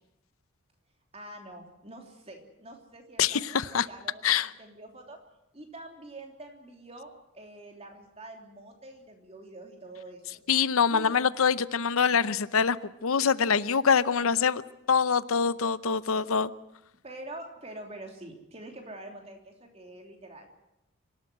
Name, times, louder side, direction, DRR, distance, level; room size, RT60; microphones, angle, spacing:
voice 1, 1.1-5.2 5.5-10.4 10.9-11.2 17.0-20.5, right 1 dB, 30° right, 3 dB, 3.3 m, -46 dB
voice 2, 3.2-3.9 4.2-4.5 10.5-12.8 13.0-14.6 14.9-16.5, left 6 dB, 85° left, 16 dB, 0.7 m, -24 dB
25.0 x 12.5 x 9.4 m, 0.91 s
head